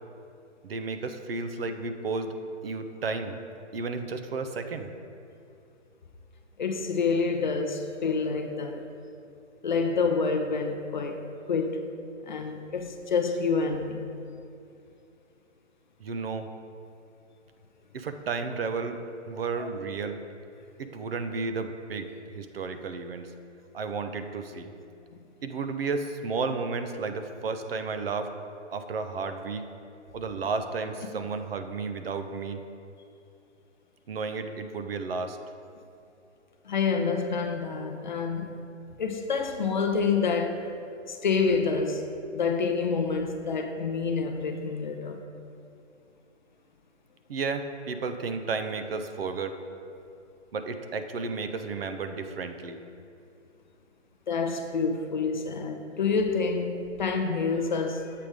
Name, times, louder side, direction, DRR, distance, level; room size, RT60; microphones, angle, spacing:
voice 1, 0.6-2.3 2.6-3.4 3.7-4.9 16.0-16.5 17.9-20.2 20.8-23.3 23.7-24.7 25.4-28.3 28.7-29.7 30.1-32.6 34.1-35.4 47.3-49.6 50.5-52.8, right 4 dB, 50° right, 8 dB, 0.6 m, -32 dB
voice 2, 6.6-8.9 9.6-11.9 12.2-14.1 19.6-19.7 36.6-38.6 39.0-40.6 41.1-42.1 42.3-45.2 54.3-58.3, left 4 dB, 40° left, 5 dB, 0.5 m, -28 dB
7.7 x 5.0 x 4.8 m, 2.7 s
hypercardioid pair, 155°, 37 cm